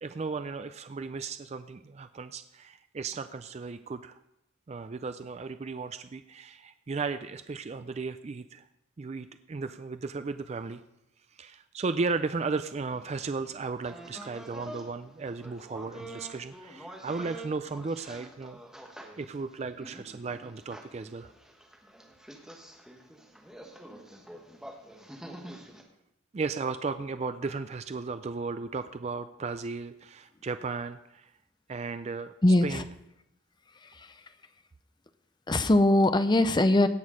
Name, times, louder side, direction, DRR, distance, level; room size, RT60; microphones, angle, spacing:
voice 1, 0.0-4.2 4.7-8.7 9.0-10.8 11.3-18.6 19.2-21.3 26.3-31.3 31.7-32.9, right 4 dB, 35° right, 10 dB, 0.4 m, -35 dB
sound 1, 12.9-14.9 15.1-25.8, right 1 dB, 5° right, 1.2 m, -47 dB
voice 2, 32.4-32.8 33.8-34.2 35.5-36.9, left 1 dB, 20° left, 11 dB, 0.6 m, -22 dB
17.0 x 6.3 x 5.0 m, 0.82 s
head